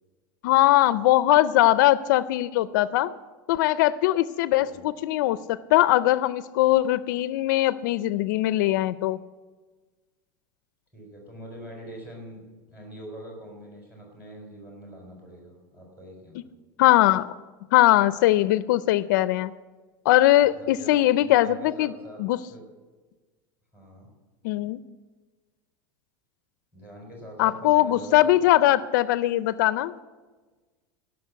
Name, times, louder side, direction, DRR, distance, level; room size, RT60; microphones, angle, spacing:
voice 1, 0.4-3.1 3.5-9.2 16.8-17.3 17.7-19.5 20.1-21.9 22.2-22.4 24.4-24.8 27.4-29.9, left 15 dB, 65° left, 16 dB, 0.4 m, -21 dB
voice 2, 4.5-4.9 10.9-12.4 12.7-16.5 20.4-20.9 21.2-22.2 22.5-22.7 23.7-24.1 26.7-28.5, right 1 dB, 15° right, -1 dB, 4.0 m, -44 dB
16.0 x 6.3 x 8.2 m, 1.3 s
supercardioid pair, 165°, 11 cm